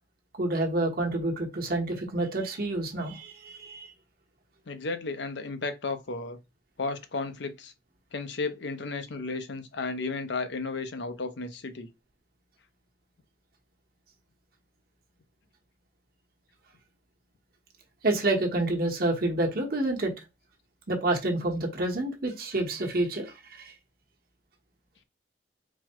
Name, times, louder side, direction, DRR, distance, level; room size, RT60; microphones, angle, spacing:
voice 1, 0.4-3.9 18.0-20.1 20.9-23.7, right 2 dB, 55° right, 1.1 m, -28 dB
voice 2, 4.7-6.4 6.8-7.7 8.1-11.9, left 3 dB, 85° left, 0.7 m, -33 dB
4.2 x 2.1 x 4.4 m
head